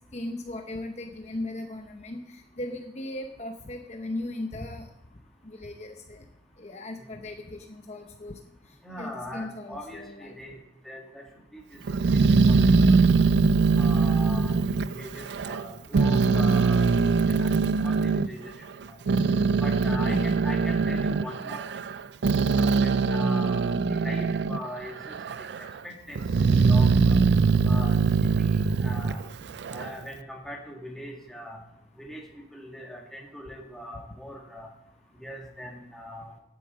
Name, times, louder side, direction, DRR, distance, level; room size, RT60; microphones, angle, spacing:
voice 1, 0.1-2.2 2.6-4.9 5.4-6.2 6.6-8.4 9.0-10.4, left 1 dB, 40° left, 4 dB, 0.8 m, -37 dB
voice 2, 8.8-10.6 10.8-11.2 11.5-11.8 12.1-12.2 12.5-13.2 13.8-18.5 18.9-19.0 19.6-21.6 22.5-25.2 25.6-27.2 27.7-28.0 28.4-29.2 29.7-31.6 32.0-32.2 32.5-34.7 35.2-36.3, left 1 dB, ahead, 0 dB, 1.9 m, -41 dB
Growling, 11.9-15.6 15.9-18.3 18.8-24.7 25.0-25.7 26.2-29.9, right 4 dB, 70° right, 0.4 m, -22 dB
9.5 x 8.4 x 7.5 m, 0.82 s
head